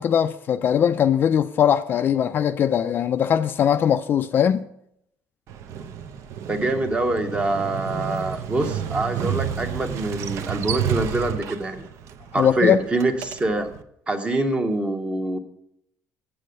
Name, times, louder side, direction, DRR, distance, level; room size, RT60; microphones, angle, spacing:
voice 1, 0.0-4.6 12.4-12.8, left 9 dB, 40° left, 0.4 m, -20 dB
Motorcycle, 5.5-13.8, right 9 dB, 60° right, 0.7 m, -31 dB
voice 2, 6.5-11.9 12.3-13.7 14.1-15.4, right 2 dB, 20° right, 1.0 m, -25 dB
8.2 x 7.6 x 6.4 m
cardioid pair, 150°, 6 cm